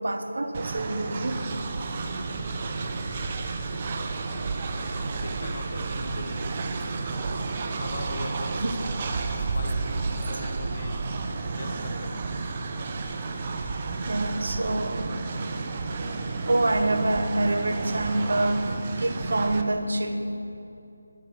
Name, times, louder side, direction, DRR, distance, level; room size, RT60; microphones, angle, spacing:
voice 1, 0.0-1.4 6.1-6.2 8.6-8.7 14.1-15.1 16.5-18.7 19.0-20.4, right 2 dB, 60° right, 7 dB, 1.0 m, -26 dB
Train, 0.5-19.6, right 3 dB, 30° right, 0.7 m, -31 dB
voice 2, 4.6-6.5 7.8-8.6 9.4-11.0 11.3-12.1, left 2 dB, 40° left, 5 dB, 1.0 m, -41 dB
12.5 x 8.7 x 6.4 m, 2.7 s
figure-of-eight pair, 160°, 0 cm